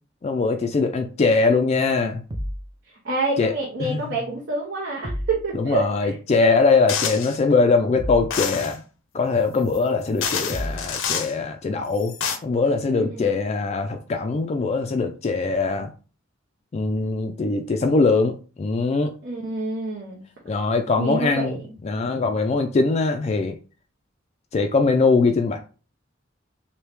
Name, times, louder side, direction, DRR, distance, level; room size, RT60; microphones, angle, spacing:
voice 1, 0.2-2.2 3.4-3.5 3.8-4.1 5.5-8.8 9.1-12.1 12.4-15.9 16.7-19.1 20.5-23.6 24.5-25.6, left 4 dB, 35° left, 0.3 m, -22 dB
sound 1, 2.3-2.7 5.0-5.4 8.0-8.3 10.5-10.9, equal, 25° right, 0.5 m, -30 dB
voice 2, 3.0-6.1 12.9-13.3 19.2-20.2 21.0-21.5, right 2 dB, 65° right, 0.8 m, -28 dB
sound 2, 6.9-7.4 8.3-8.8 9.7-9.8 10.2-11.3 12.0-12.4, left 7 dB, 80° left, 0.6 m, -27 dB
3.1 x 2.7 x 3.3 m
head